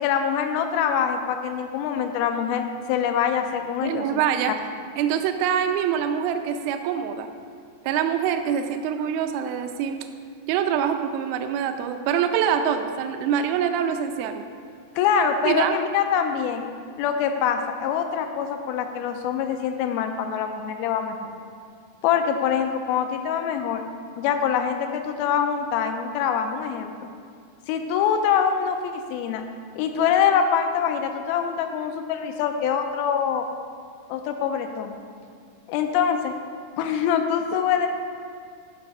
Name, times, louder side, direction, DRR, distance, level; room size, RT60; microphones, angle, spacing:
voice 1, 0.0-4.0 15.0-16.7 17.0-21.3 22.0-23.8 24.2-26.9 27.7-29.4 29.8-33.5 34.1-35.0 35.7-36.3 36.8-37.9, left 7 dB, 80° left, 6 dB, 2.4 m, -24 dB
voice 2, 3.8-4.5 5.0-7.3 7.8-10.0 10.5-14.4 15.4-15.8, right 8 dB, 80° right, 7 dB, 2.3 m, -24 dB
13.5 x 5.8 x 5.3 m, 2.2 s
omnidirectional pair, 4.6 m